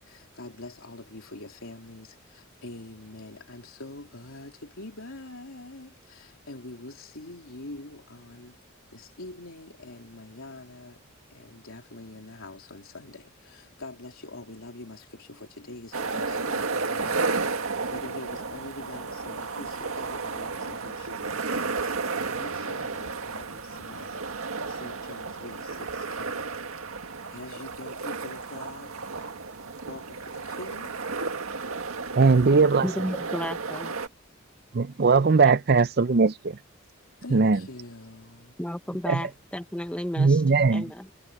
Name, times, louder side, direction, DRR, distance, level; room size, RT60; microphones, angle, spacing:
voice 1, 0.0-8.6 8.9-11.0 11.3-26.5 27.3-28.9 29.2-29.3 29.8-31.0 37.2-38.6, left 2 dB, 80° left, 3.1 m, -44 dB
sound 1, 15.9-34.1, right 4 dB, 90° right, 1.9 m, -33 dB
voice 2, 32.2-32.9 34.7-36.6 37.3-37.6 39.1-39.2 40.2-40.8, right 4 dB, 50° right, 0.5 m, -20 dB
voice 3, 32.8-33.9 38.6-40.4 40.7-41.1, equal, 5° left, 0.8 m, -33 dB
head